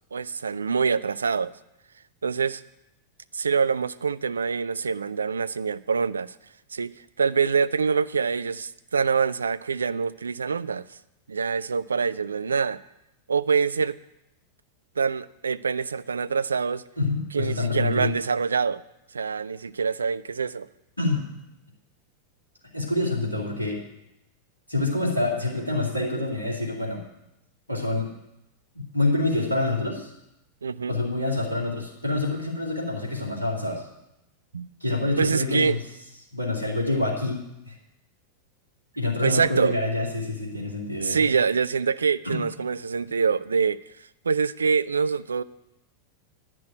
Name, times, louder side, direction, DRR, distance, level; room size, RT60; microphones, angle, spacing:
voice 1, 0.1-1.5 2.2-2.6 3.3-6.3 6.7-6.9 7.2-10.9 11.3-12.8 13.3-14.0 15.0-16.8 17.3-18.8 19.1-20.7 30.6-31.0 34.5-34.7 35.2-35.8 39.2-39.8 41.0-43.8 44.3-45.4, right 5 dB, 75° right, 17 dB, 0.3 m, -25 dB
voice 2, 17.0-18.1 21.0-21.2 22.7-23.8 24.7-27.0 27.7-28.1 28.7-30.1 30.9-33.9 34.8-35.8 36.3-37.7 39.0-41.2 42.2-42.4, left 2 dB, 85° left, -3 dB, 2.7 m, -26 dB
10.5 x 6.1 x 8.9 m, 0.87 s
figure-of-eight pair, 90°, 0 cm